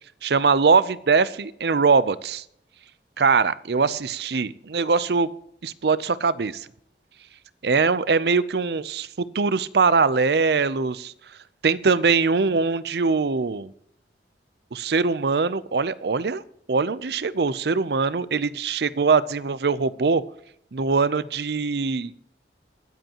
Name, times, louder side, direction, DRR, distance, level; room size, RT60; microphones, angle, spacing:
voice 1, 0.2-2.4 3.2-5.3 5.6-6.7 7.6-11.1 11.6-13.7 14.7-16.4 16.7-20.2 20.7-22.1, right 4 dB, 65° right, 18 dB, 0.6 m, -22 dB
21.5 x 7.9 x 2.9 m, 0.70 s
head